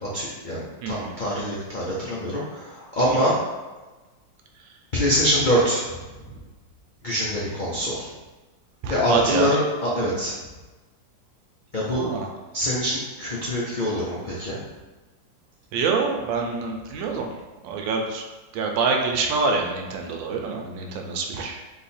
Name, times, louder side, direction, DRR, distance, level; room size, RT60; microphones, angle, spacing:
voice 1, 0.0-3.3 4.9-5.8 7.0-8.1 8.9-10.3 11.7-12.1 12.5-14.6, equal, 70° left, -7 dB, 0.4 m, -24 dB
voice 2, 0.8-1.1 8.8-9.5 11.9-12.3 15.7-17.3 17.6-18.2 18.5-21.6, right 4 dB, 85° right, 2 dB, 1.4 m, -26 dB
3.9 x 3.2 x 4.2 m, 1.2 s
omnidirectional pair, 2.1 m